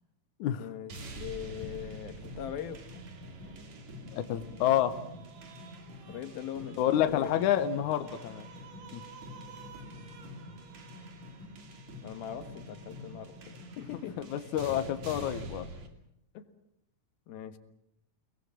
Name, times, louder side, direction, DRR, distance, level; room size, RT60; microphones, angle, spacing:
voice 1, 0.6-3.0 6.1-7.3 12.0-14.2 16.3-16.5 17.3-17.6, left 10 dB, 85° left, 9 dB, 3.3 m, -41 dB
sound 1, 0.9-15.9, equal, 50° right, 3.8 m, -45 dB
voice 2, 4.1-5.0 6.8-8.5 8.9-9.0 14.2-15.7, left 11 dB, 65° left, 10 dB, 2.3 m, -28 dB
29.5 x 20.5 x 7.6 m, 0.78 s
omnidirectional pair, 4.1 m